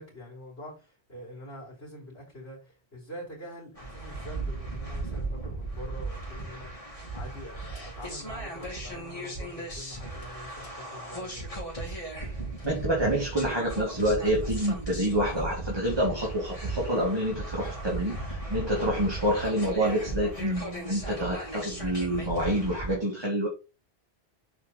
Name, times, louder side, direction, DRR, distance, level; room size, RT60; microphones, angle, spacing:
voice 1, 0.0-11.6, equal, 70° left, -5 dB, 3.7 m, -45 dB
sound 1, 3.8-22.9, right 2 dB, 30° left, 2.9 m, -36 dB
voice 2, 12.6-23.5, equal, 20° right, -3 dB, 2.1 m, -27 dB
7.2 x 4.5 x 3.9 m, 0.29 s
omnidirectional pair, 1.1 m